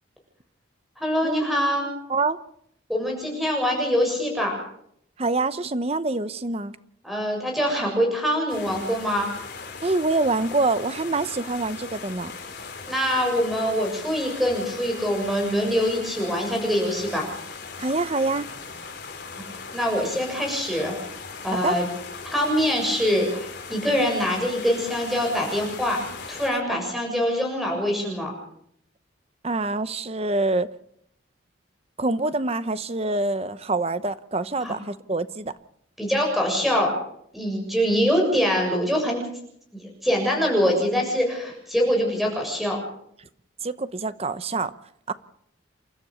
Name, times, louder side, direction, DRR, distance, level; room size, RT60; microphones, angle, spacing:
voice 1, 1.0-1.9 2.9-4.5 7.0-9.3 12.9-17.3 19.5-20.9 21.4-21.9 22.2-26.0 26.3-28.3 34.6-34.7 36.0-36.9 37.3-39.2 39.7-42.8, equal, ahead, 7.1 m, -24 dB
voice 2, 5.2-6.8 9.8-12.3 17.8-18.5 21.6-21.8 29.4-30.7 32.0-35.5 43.6-44.7 45.1-45.2, right 3 dB, 30° right, 0.9 m, -25 dB
sound 1, 8.5-26.5, left 5 dB, 55° left, 3.9 m, -39 dB
29.0 x 13.0 x 7.1 m
head